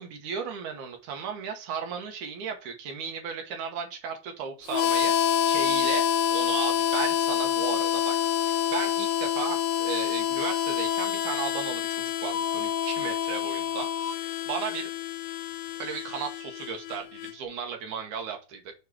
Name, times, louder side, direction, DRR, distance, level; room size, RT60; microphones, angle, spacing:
voice 1, 0.0-8.2 8.4-14.9 15.8-18.7, right 6 dB, 70° right, 3 dB, 2.0 m, -35 dB
Harmonica, 4.7-17.3, left 10 dB, 85° left, 2.5 m, -27 dB
6.8 x 3.0 x 4.6 m, 0.32 s
omnidirectional pair, 4.5 m